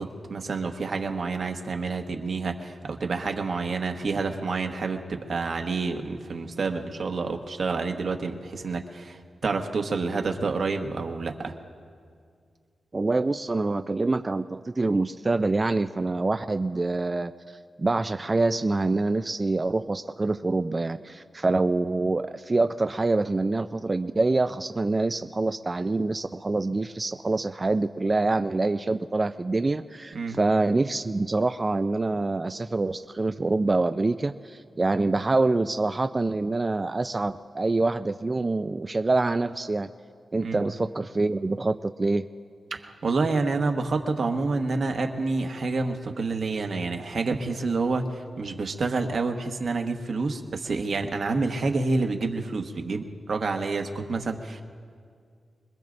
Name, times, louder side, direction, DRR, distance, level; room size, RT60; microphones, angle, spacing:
voice 1, 0.0-11.5 30.1-30.4 40.4-40.6 42.7-54.6, right 3 dB, 65° right, 4 dB, 1.3 m, -28 dB
voice 2, 12.9-39.9 40.3-42.3, right 3 dB, 30° right, 8 dB, 0.4 m, -26 dB
26.0 x 21.0 x 2.6 m, 2.2 s
cardioid pair, 70°, 0 cm